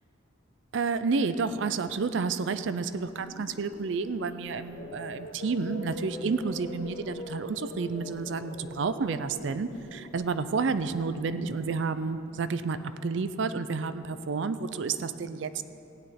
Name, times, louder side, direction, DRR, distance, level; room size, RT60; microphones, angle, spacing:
voice 1, 0.7-15.6, right 4 dB, 65° right, 12 dB, 0.4 m, -30 dB
sound 1, 2.6-12.8, left 1 dB, 50° left, 1.4 m, -44 dB
16.0 x 9.2 x 4.2 m, 2.8 s
head